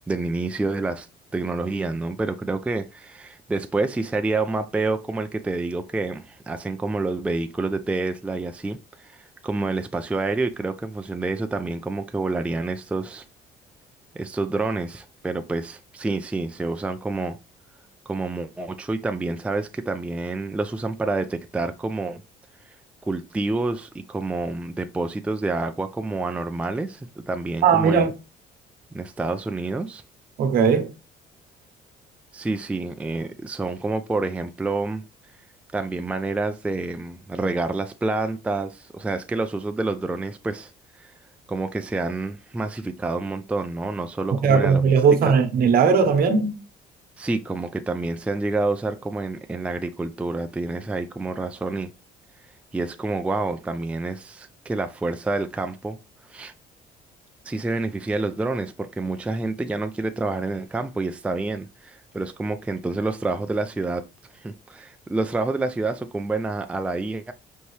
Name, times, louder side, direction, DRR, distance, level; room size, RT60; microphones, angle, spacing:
voice 1, 0.1-1.1 1.3-13.2 14.1-17.4 18.1-22.2 22.6-22.7 23.0-28.1 28.9-30.0 32.3-35.0 35.7-40.7 41.0-41.1 41.5-45.0 45.2-45.4 47.2-51.9 52.7-56.0 56.3-56.5 57.4-64.1 64.3-67.3, right 3 dB, 5° right, 0.4 m, -28 dB
voice 2, 27.6-28.1 30.4-30.9 44.4-46.6, right 6 dB, 60° right, 0.9 m, -18 dB
5.4 x 2.7 x 3.1 m
cardioid pair, 110°, 17 cm